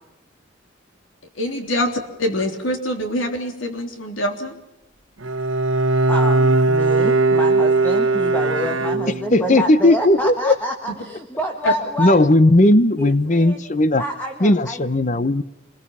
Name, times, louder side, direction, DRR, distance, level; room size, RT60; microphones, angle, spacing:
voice 1, 1.3-4.6 11.6-11.7, equal, 85° left, 4 dB, 3.4 m, -24 dB
Bowed string instrument, 5.2-9.6, right 3 dB, 90° right, 1.2 m, -19 dB
voice 2, 6.1-12.2 12.6-12.7 13.0-13.6 14.0-14.8, equal, 10° left, 2 dB, 1.7 m, -28 dB
voice 3, 9.3-10.5 12.0-14.0 14.4-15.4, left 1 dB, 40° left, 14 dB, 0.9 m, -16 dB
27.0 x 21.5 x 5.6 m, 0.94 s
head